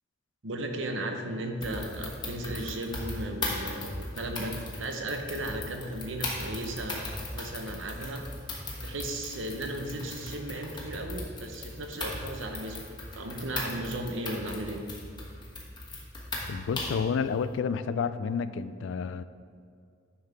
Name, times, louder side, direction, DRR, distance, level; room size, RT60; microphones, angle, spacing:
voice 1, 0.4-8.2 8.8-14.8, right 1 dB, 75° right, 4 dB, 0.9 m, -35 dB
sound 1, 1.6-17.1, left 2 dB, 25° left, 1.2 m, -38 dB
voice 2, 16.5-19.2, left 6 dB, 70° left, 13 dB, 0.3 m, -30 dB
9.7 x 5.7 x 3.5 m, 2.2 s
head